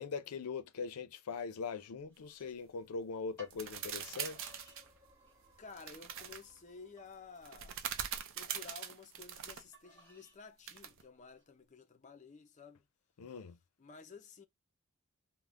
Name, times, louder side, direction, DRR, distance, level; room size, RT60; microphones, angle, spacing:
voice 1, 0.0-4.5 13.2-13.6, left 5 dB, 85° left, 0.5 m, -41 dB
sound 1, 1.7-2.9 3.4-3.6 4.2-4.8 5.2-5.7 6.2-6.3 7.0-8.5 9.7-10.4 11.0-11.5, equal, 10° left, 1.0 m, -62 dB
sound 2, 3.5-4.9 5.8-6.4 7.4-9.6 10.7-11.0, right 8 dB, 60° right, 0.5 m, -42 dB
sound 3, 3.8-8.8, equal, 10° right, 1.0 m, -67 dB
voice 2, 5.6-7.8 8.3-12.9 13.8-14.4, left 4 dB, 35° left, 0.5 m, -53 dB
3.4 x 2.1 x 2.5 m
head